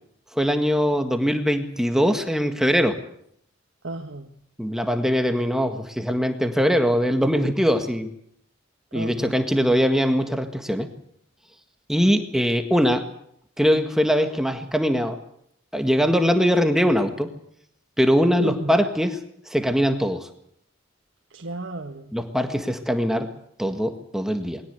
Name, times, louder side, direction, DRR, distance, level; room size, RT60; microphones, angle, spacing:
voice 1, 0.3-3.0 4.6-8.1 8.9-10.9 11.9-13.1 13.6-15.2 15.7-17.3 18.0-19.2 19.5-20.3 22.1-23.3 23.6-24.6, equal, 5° right, 6 dB, 1.7 m, -21 dB
voice 2, 3.8-4.3 8.9-9.4 18.4-18.7 21.3-22.1, right 2 dB, 75° right, 2 dB, 1.7 m, -33 dB
21.5 x 17.5 x 8.1 m, 0.70 s
head